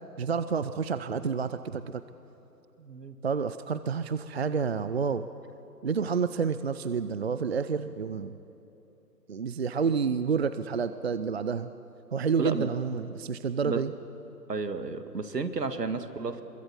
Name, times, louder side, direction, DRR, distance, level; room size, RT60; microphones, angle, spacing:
voice 1, 0.2-2.0 3.2-5.3 5.8-8.4 9.3-11.7 12.1-13.9, right 5 dB, 40° right, 13 dB, 0.6 m, -29 dB
voice 2, 2.8-3.2 12.4-12.7 13.6-13.8 14.5-16.4, right 4 dB, 75° right, 9 dB, 2.1 m, -32 dB
26.0 x 22.5 x 8.3 m, 2.9 s
figure-of-eight pair, 145°, 49 cm